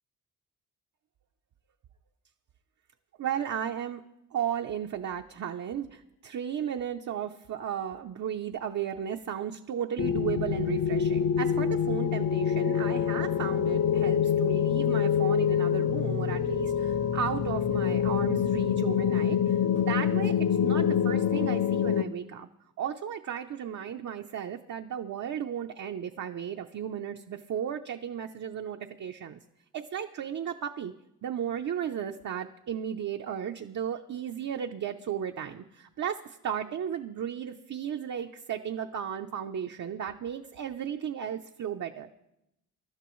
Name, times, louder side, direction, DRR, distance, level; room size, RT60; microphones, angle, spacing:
voice 1, 3.2-4.0 4.3-22.5 22.8-29.4 29.7-30.9 31.2-42.1, right 8 dB, 60° right, 4 dB, 0.7 m, -34 dB
sound 1, 10.0-22.0, left 8 dB, 50° left, 0.6 m, -26 dB
23.0 x 12.5 x 3.1 m, 0.86 s
wide cardioid pair, 115°, 32 cm